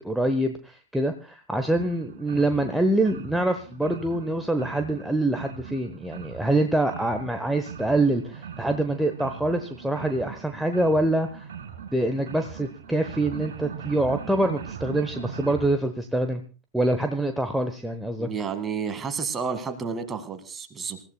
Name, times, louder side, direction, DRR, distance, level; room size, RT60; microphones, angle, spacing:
voice 1, 0.0-11.5 11.9-16.4 16.7-18.3, right 1 dB, 5° right, 5 dB, 1.0 m, -25 dB
sound 1, 1.7-15.7, right 7 dB, 60° right, 2.0 m, -40 dB
voice 2, 18.2-21.0, right 6 dB, 20° right, 9 dB, 1.9 m, -31 dB
27.0 x 15.0 x 2.2 m, 0.33 s
figure-of-eight pair, 90°, 0 cm